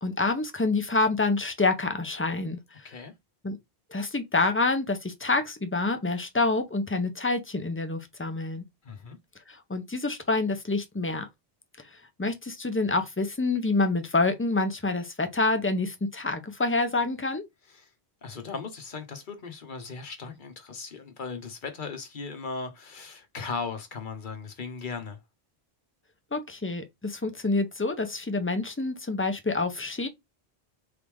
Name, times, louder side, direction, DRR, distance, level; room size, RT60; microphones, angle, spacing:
voice 1, 0.0-2.9 3.4-3.6 3.9-8.6 9.5-11.3 12.2-17.4 26.3-30.1, left 3 dB, 15° left, 0.5 m, -27 dB
voice 2, 8.8-9.2 17.7-17.9 18.2-25.2, left 4 dB, 55° left, 1.0 m, -37 dB
3.8 x 3.2 x 3.5 m
omnidirectional pair, 1.1 m